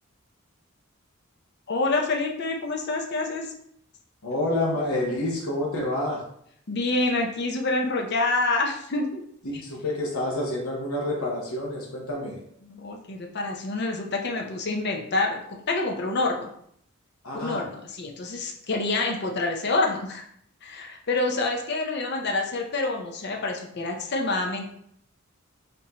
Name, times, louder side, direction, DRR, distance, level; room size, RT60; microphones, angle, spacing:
voice 1, 1.7-3.5 6.7-9.2 12.6-15.4 15.7-16.5 17.3-20.2 20.6-24.7, left 2 dB, 50° left, 2 dB, 0.6 m, -27 dB
voice 2, 4.2-6.2 9.5-12.4 17.2-17.6, left 1 dB, 85° left, -2 dB, 0.9 m, -28 dB
5.4 x 2.7 x 2.9 m, 0.70 s
head